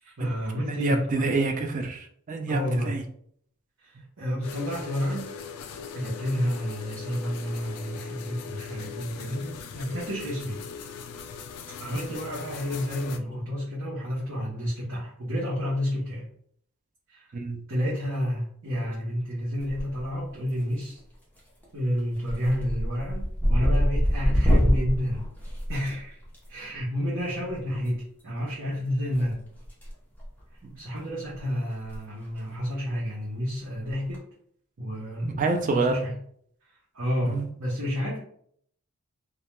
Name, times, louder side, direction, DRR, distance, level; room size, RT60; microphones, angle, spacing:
voice 1, 0.0-1.3 2.5-2.9 3.8-5.3 5.9-10.6 11.8-16.3 17.1-17.3 17.7-21.0 21.7-25.2 25.7-26.2 26.5-29.4 30.8-34.2 34.8-36.1 36.9-38.2, equal, 60° right, -7 dB, 0.7 m, -30 dB
voice 2, 0.7-3.0 17.3-17.6 30.6-30.8 35.2-36.0 37.2-37.5, right 3 dB, 35° right, 4 dB, 0.3 m, -27 dB
sound 1, 4.4-13.2, left 6 dB, 85° left, 0.3 m, -40 dB
sound 2, 19.6-20.2 20.5-21.0 21.4-21.6 22.0-26.4 27.7-27.9 29.1-29.9 30.2-30.4 31.0-31.1 31.3-31.4 31.8-32.0 32.2-32.3 33.9-34.2, equal, 10° left, 0.6 m, -25 dB
2.2 x 2.1 x 2.9 m, 0.64 s
head